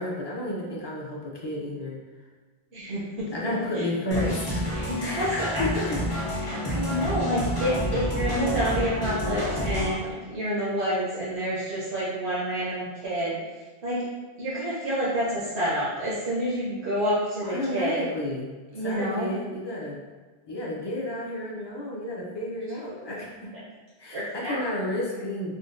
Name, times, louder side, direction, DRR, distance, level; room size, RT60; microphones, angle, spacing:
voice 1, 0.0-2.0 2.9-3.0 3.3-6.0 17.4-18.5 18.8-20.0 20.5-23.5 24.0-25.5, left 1 dB, 40° left, -4 dB, 0.4 m, -32 dB
voice 2, 2.7-3.0 4.1-4.3 4.7-5.7 6.4-13.4 13.8-14.0 14.4-18.0 18.7-19.3 24.1-24.6, equal, 90° right, -9 dB, 1.0 m, -28 dB
sound 1, 4.1-9.9, equal, 65° left, 1.3 m, -29 dB
3.7 x 2.1 x 2.5 m, 1.3 s
omnidirectional pair, 1.1 m